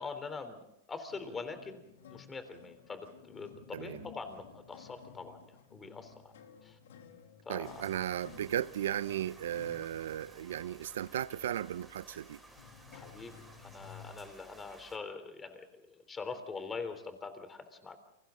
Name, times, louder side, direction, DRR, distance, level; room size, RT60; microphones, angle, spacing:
voice 1, 0.0-1.8 2.1-5.4 5.7-6.3 6.6-6.8 7.4-7.8 12.9-13.3 13.6-18.0, left 4 dB, 15° left, 3.4 m, -43 dB
sound 1, 1.1-14.1, left 7 dB, 80° left, 3.1 m, -55 dB
voice 2, 3.7-4.1 7.5-12.4, right 11 dB, 80° right, 0.7 m, -36 dB
sound 2, 7.6-15.0, right 1 dB, ahead, 5.5 m, -57 dB
29.5 x 24.5 x 3.9 m
hypercardioid pair, 130°, 0 cm